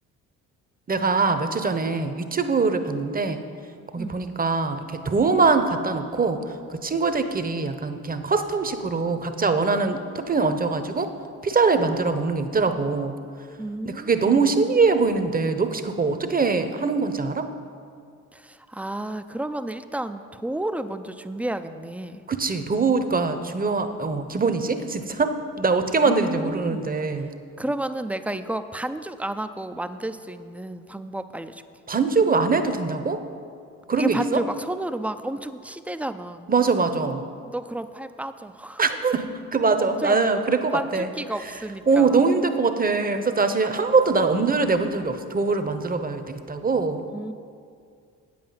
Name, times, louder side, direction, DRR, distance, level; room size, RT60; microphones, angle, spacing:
voice 1, 0.9-3.4 3.9-6.4 6.7-11.1 11.4-13.1 13.8-17.5 22.3-27.3 31.9-33.2 33.9-34.4 36.5-37.2 38.8-41.1 41.9-47.0, right 4 dB, 25° right, 9 dB, 0.8 m, -23 dB
voice 2, 13.6-14.6 18.3-22.2 26.0-26.9 27.6-31.6 34.0-36.5 37.4-38.8 39.8-40.4 40.7-42.2 47.1-47.3, right 1 dB, 5° right, 10 dB, 0.4 m, -31 dB
8.6 x 7.7 x 5.6 m, 2.3 s
hypercardioid pair, 55°, 37 cm